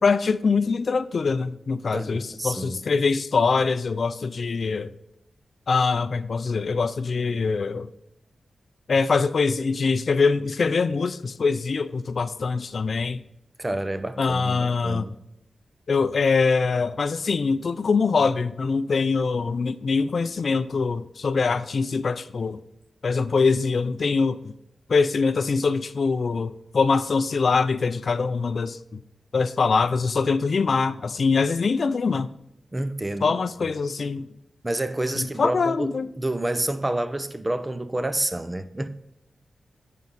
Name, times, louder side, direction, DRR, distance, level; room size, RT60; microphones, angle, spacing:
voice 1, 0.0-4.9 5.7-7.9 8.9-13.2 14.2-15.0 15.9-22.6 23.0-24.5 24.9-29.0 29.3-32.3 33.2-34.3 35.2-36.1, left 4 dB, 60° left, 0.4 m, -23 dB
voice 2, 1.9-2.8 13.6-15.1 32.7-33.7 34.6-38.9, right 1 dB, 20° right, 0.6 m, -29 dB
9.3 x 5.4 x 3.9 m
cardioid pair, 60°, 0 cm